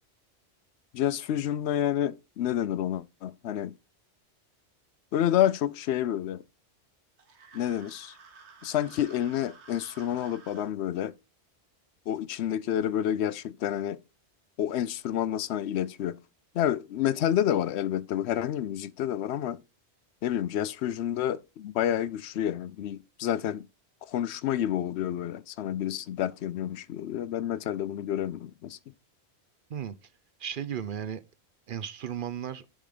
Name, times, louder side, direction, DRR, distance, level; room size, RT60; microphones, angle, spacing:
voice 1, 0.9-3.7 5.1-6.4 7.5-8.1 8.6-11.1 12.1-14.0 14.6-16.2 16.5-19.6 20.2-23.7 24.0-28.8, left 11 dB, 75° left, 0.8 m, -29 dB
sound 1, 7.2-10.7, right 4 dB, 85° right, 1.6 m, -52 dB
voice 2, 30.4-31.2 31.7-32.7, right 9 dB, 55° right, 0.7 m, -35 dB
10.5 x 3.7 x 4.9 m
omnidirectional pair, 1.1 m